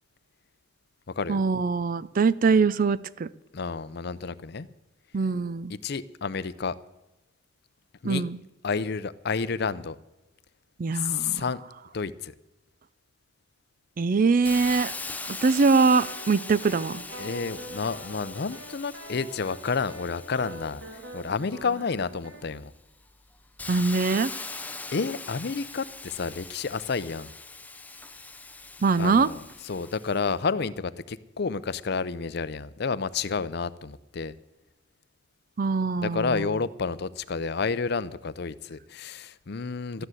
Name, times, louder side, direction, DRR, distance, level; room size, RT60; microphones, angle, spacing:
voice 1, 1.3-3.3 5.1-5.7 8.0-8.4 10.8-11.4 14.0-14.9 15.3-17.0 23.7-24.3 28.8-29.3 35.6-36.4, right 4 dB, 45° right, 18 dB, 0.4 m, -23 dB
voice 2, 3.5-4.7 5.7-6.7 8.0-8.2 8.6-10.0 10.9-11.6 11.9-12.3 17.2-22.7 24.3-24.4 24.9-27.3 29.0-34.3 36.0-40.1, left 5 dB, 55° left, 16 dB, 0.6 m, -30 dB
Hiss, 14.5-22.0 22.5-30.3, left 3 dB, 10° left, 0.6 m, -41 dB
sound 1, 15.7-22.5, right 1 dB, 75° right, 2.9 m, -44 dB
13.5 x 10.0 x 7.9 m, 1.0 s
head